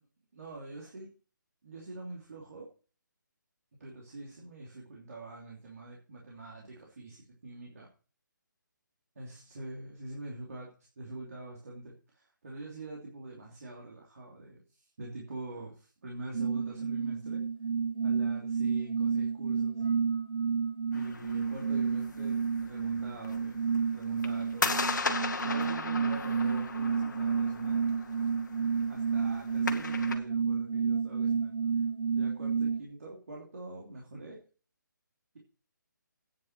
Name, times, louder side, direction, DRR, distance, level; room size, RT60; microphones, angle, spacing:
voice 1, 0.3-1.1 1.6-2.7 3.8-7.9 9.1-10.7 11.0-17.4 18.0-19.8 20.9-24.8 25.4-28.2 28.6-31.5 32.1-34.4, right 2 dB, 50° right, -2 dB, 2.8 m, -45 dB
sound 1, 16.3-32.8, right 6 dB, 30° right, 0.7 m, -30 dB
sound 2, 20.9-30.2, left 4 dB, 65° left, 1.6 m, -37 dB
9.6 x 5.9 x 7.5 m, 0.37 s
hypercardioid pair, 175°, 11 cm